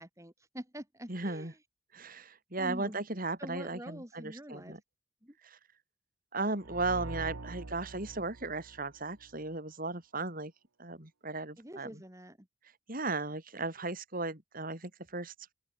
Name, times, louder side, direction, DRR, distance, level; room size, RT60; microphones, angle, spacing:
voice 1, 0.0-1.6 2.6-3.0 3.4-4.7 5.2-5.4 11.6-12.5, equal, 15° right, 3.5 m, -45 dB
voice 2, 1.1-1.5 1.9-4.8 5.4-5.6 6.3-10.5 10.8-12.0 12.9-15.3, right 3 dB, 45° right, 4.3 m, -36 dB
sound 1, 6.6-9.4, right 2 dB, 90° right, 1.1 m, -44 dB
open air
head